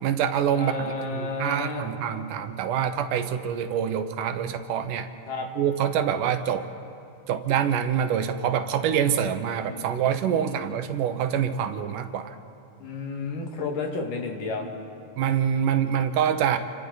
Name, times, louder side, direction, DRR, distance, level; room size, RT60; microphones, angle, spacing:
voice 1, 0.0-0.9 1.1-5.1 5.6-6.7 7.3-12.4 15.2-16.6, right 9 dB, 80° right, 9 dB, 2.5 m, -25 dB
voice 2, 0.6-1.9 5.3-5.5 9.2-9.9 10.3-10.7 12.8-14.7, left 3 dB, 80° left, 1 dB, 3.5 m, -32 dB
28.5 x 24.5 x 4.0 m, 2.9 s
omnidirectional pair, 3.7 m